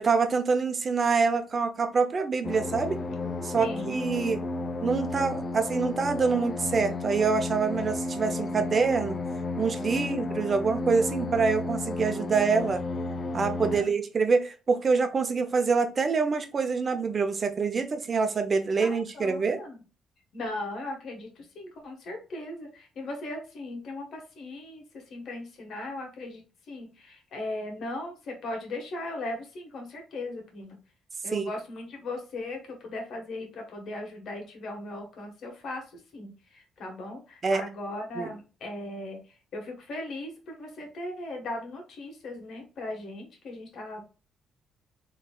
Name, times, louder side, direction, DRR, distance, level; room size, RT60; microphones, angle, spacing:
voice 1, 0.0-3.0 3.4-4.4 4.8-9.2 9.6-12.8 13.3-19.6 31.3-31.5 37.4-37.6 38.2-38.3, right 5 dB, 40° right, 8 dB, 0.7 m, -26 dB
sound 1, 2.4-13.8, left 2 dB, 35° left, 0.4 m, -33 dB
voice 2, 3.6-4.0 9.9-10.2 13.7-13.9 18.8-19.8 20.3-30.8 31.2-39.2 39.5-44.0, left 2 dB, 65° left, 2 dB, 1.5 m, -38 dB
4.0 x 3.2 x 2.4 m, 0.33 s
cardioid pair, 90°, 0 cm